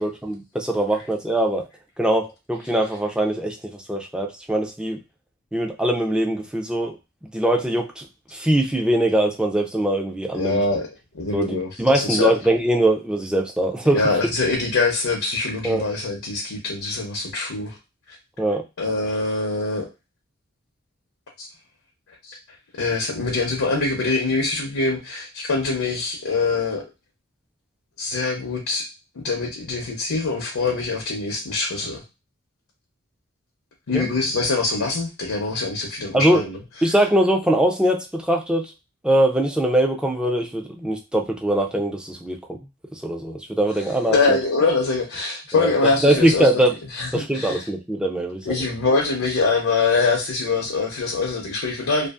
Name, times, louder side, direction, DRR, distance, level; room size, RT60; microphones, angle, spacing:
voice 1, 0.0-1.7 2.0-5.0 5.5-7.0 7.3-8.1 8.3-10.6 11.3-14.0 15.6-15.8 18.4-18.6 33.9-34.1 36.1-36.4 36.8-38.7 39.0-42.6 42.9-44.4 45.5-45.7 46.0-46.7 47.1-48.6, right 1 dB, 5° right, 3 dB, 0.3 m, -22 dB
voice 2, 10.3-10.9 11.1-12.3 13.9-17.7 18.1-18.2 18.8-19.9 21.4-21.5 22.2-22.4 22.8-26.8 28.0-28.9 29.2-32.0 33.9-36.6 36.9-37.0 44.1-46.5 46.9-47.6 48.4-52.1, left 3 dB, 80° left, -1 dB, 0.6 m, -24 dB
2.5 x 2.4 x 2.3 m, 0.26 s
head